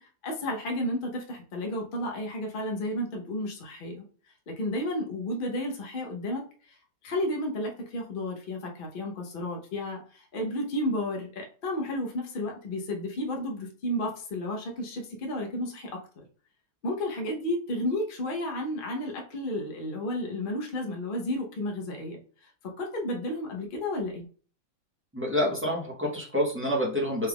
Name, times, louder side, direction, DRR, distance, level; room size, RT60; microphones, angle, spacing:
voice 1, 0.0-4.0 4.5-6.8 7.0-16.0 16.8-22.2 22.6-24.3, left 1 dB, 55° left, 1 dB, 0.6 m, -32 dB
voice 2, 25.1-27.3, equal, 15° right, -4 dB, 0.4 m, -27 dB
4.3 x 2.3 x 3.4 m, 0.41 s
omnidirectional pair, 1.9 m